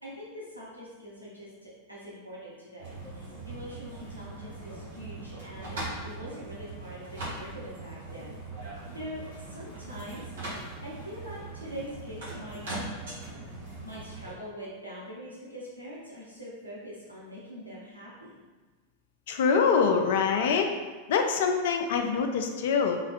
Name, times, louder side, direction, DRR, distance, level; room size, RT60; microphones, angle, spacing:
voice 1, 0.0-5.8 6.0-10.3 10.8-12.6 13.8-18.4, equal, 90° right, -7 dB, 0.8 m, -43 dB
sound 1, 2.8-14.3, right 2 dB, 60° right, 1.4 m, -40 dB
voice 2, 19.3-20.7 21.1-23.0, left 5 dB, 55° left, 4 dB, 0.4 m, -24 dB
3.6 x 3.2 x 2.5 m, 1.4 s
figure-of-eight pair, 90°, 0 cm